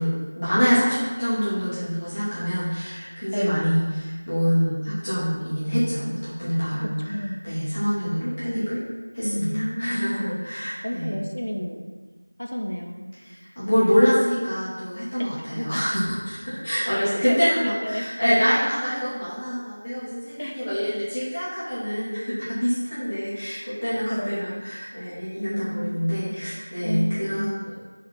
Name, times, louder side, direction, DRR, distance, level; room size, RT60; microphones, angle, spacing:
voice 1, 0.0-7.1 7.4-8.8 9.1-11.2 13.2-27.7, equal, 15° left, -12 dB, 1.4 m, -25 dB
voice 2, 3.3-3.7 7.0-7.3 9.2-10.5 10.8-11.9 12.4-13.1 15.2-16.0 17.2-18.5 20.4-20.9 24.1-24.6 25.4-26.3 26.8-27.6, equal, 45° left, 1 dB, 0.9 m, -31 dB
7.4 x 3.8 x 6.2 m, 1.4 s
figure-of-eight pair, 180°, 0 cm